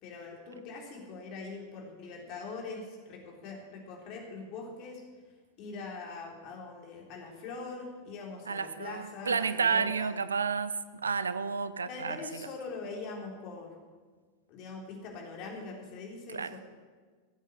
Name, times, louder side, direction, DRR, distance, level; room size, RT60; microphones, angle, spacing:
voice 1, 0.0-5.0 5.6-10.2 11.8-13.7 14.5-16.6, left 4 dB, 40° left, -1 dB, 3.7 m, -42 dB
voice 2, 8.5-10.8 11.0-12.2 16.3-16.6, right 5 dB, 75° right, 14 dB, 0.6 m, -30 dB
15.5 x 8.2 x 8.1 m, 1.5 s
figure-of-eight pair, 90°, 0 cm